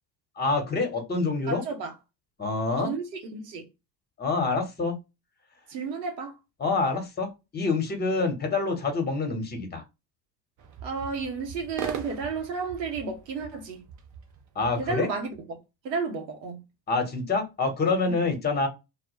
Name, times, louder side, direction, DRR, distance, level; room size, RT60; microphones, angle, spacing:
voice 1, 0.4-1.6 2.4-2.9 4.2-5.0 6.6-9.8 14.5-15.1 16.9-18.7, left 3 dB, 20° left, 0.9 m, -26 dB
voice 2, 1.5-1.9 2.7-3.7 5.7-6.4 10.8-13.8 14.8-15.6 15.8-16.6, right 4 dB, 80° right, 0.7 m, -32 dB
sound 1, 10.6-15.5, right 7 dB, 40° right, 0.6 m, -41 dB
2.0 x 2.0 x 2.9 m
hypercardioid pair, 70°, 49 cm